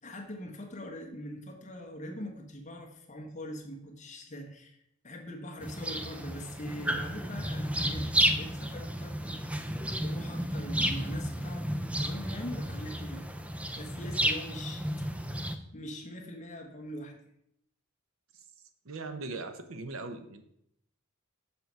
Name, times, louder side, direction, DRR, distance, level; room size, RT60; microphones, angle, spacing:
voice 1, 0.0-4.8 5.0-9.2 10.0-11.7 12.0-13.2 13.8-14.8 15.7-17.2, equal, 35° left, 2 dB, 1.2 m, -42 dB
sound 1, 5.6-15.6, equal, 5° right, 0.4 m, -32 dB
voice 2, 18.8-20.4, right 3 dB, 90° right, 8 dB, 0.8 m, -39 dB
6.8 x 5.4 x 4.6 m, 0.76 s
head